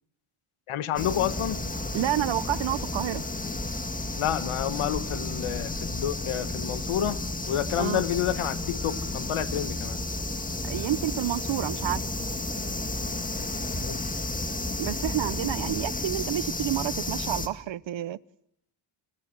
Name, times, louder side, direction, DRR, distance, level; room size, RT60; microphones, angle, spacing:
voice 1, 0.7-1.6 4.1-10.0 13.8-14.0, left 11 dB, 85° left, 1.4 m, -29 dB
sound 1, 1.0-17.5, left 2 dB, 15° left, 1.9 m, -32 dB
voice 2, 1.9-3.2 7.8-8.0 10.6-12.0 14.8-18.2, right 13 dB, 65° right, 0.8 m, -29 dB
27.0 x 16.5 x 7.7 m
wide cardioid pair, 140°, 49 cm